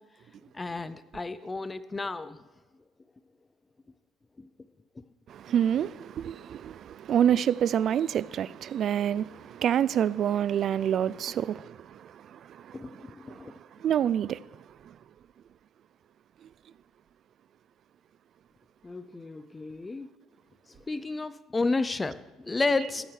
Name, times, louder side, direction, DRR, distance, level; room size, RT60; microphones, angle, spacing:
voice 1, 0.5-2.4 4.4-4.5 12.7-13.6 18.8-20.1 20.9-23.1, left 3 dB, 15° left, 0.6 m, -32 dB
voice 2, 5.3-13.0 13.3-13.5 13.8-14.4, right 9 dB, 40° right, 0.4 m, -27 dB
14.0 x 9.0 x 6.5 m
cardioid pair, 155°, 0 cm